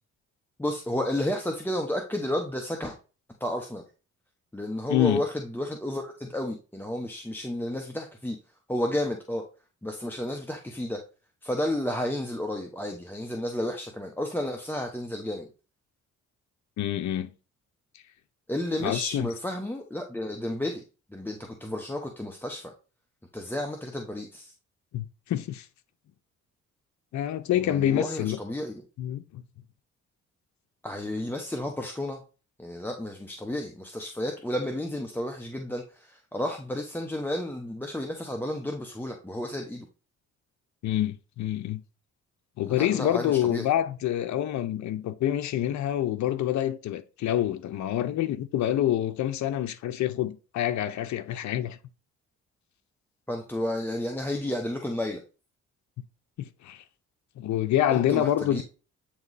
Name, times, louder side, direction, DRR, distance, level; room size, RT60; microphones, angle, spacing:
voice 1, 0.6-2.9 3.4-3.8 4.5-8.4 8.7-9.4 9.8-11.0 11.4-15.5 18.5-20.8 21.1-22.7 23.3-24.5 27.6-28.8 30.8-32.2 32.6-39.9 42.7-43.7 53.3-55.2 57.9-58.6, left 1 dB, 5° left, 0.9 m, -32 dB
voice 2, 4.9-5.2 16.8-17.3 18.8-19.3 24.9-25.7 27.1-28.4 29.0-29.4 40.8-41.8 42.6-51.8 56.4-56.8 57.4-58.6, left 12 dB, 65° left, 0.7 m, -27 dB
8.6 x 3.0 x 4.0 m
cardioid pair, 90°, 30 cm